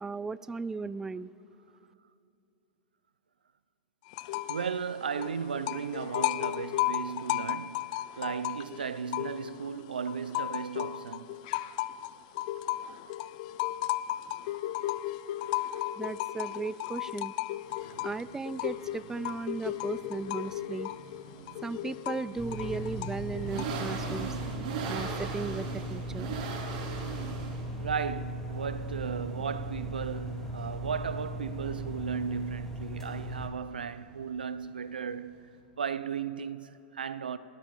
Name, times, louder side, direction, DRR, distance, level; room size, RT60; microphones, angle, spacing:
voice 1, 0.0-1.3 16.0-17.3 18.0-20.9 21.6-24.3 24.8-26.3, right 4 dB, 10° right, 0.4 m, -36 dB
sound 1, 4.1-4.7 5.0-9.7 10.1-23.9, left 14 dB, 55° left, 0.5 m, -35 dB
voice 2, 4.5-11.3 27.8-35.3 35.8-37.4, right 6 dB, 90° right, 0.6 m, -35 dB
sound 2, 17.6-35.6, right 4 dB, 70° right, 4.3 m, -42 dB
sound 3, 22.4-33.5, right 1 dB, 10° left, 3.0 m, -38 dB
29.0 x 13.0 x 3.8 m
hypercardioid pair, 110°, 5 cm